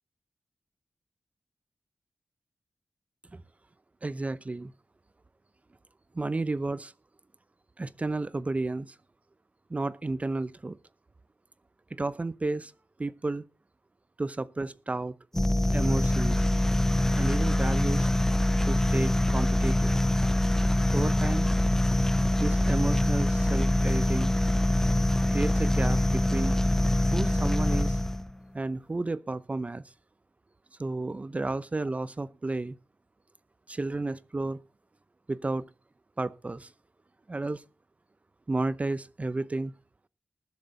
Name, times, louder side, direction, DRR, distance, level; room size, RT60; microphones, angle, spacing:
voice 1, 4.0-4.7 6.1-6.9 7.8-9.0 9.7-10.8 11.9-12.7 13.0-13.4 14.2-15.1 15.7-16.4 17.1-18.1 18.6-20.0 20.9-21.5 22.4-24.3 25.3-26.6 27.1-28.0 28.5-29.8 30.8-32.7 33.7-34.6 35.3-35.7 36.2-36.7 37.3-37.6 38.5-39.7, right 2 dB, 30° right, 0.7 m, -32 dB
sound 1, 15.3-28.3, left 1 dB, 10° left, 0.6 m, -24 dB
20.0 x 7.6 x 3.9 m
cardioid pair, 65°, 4 cm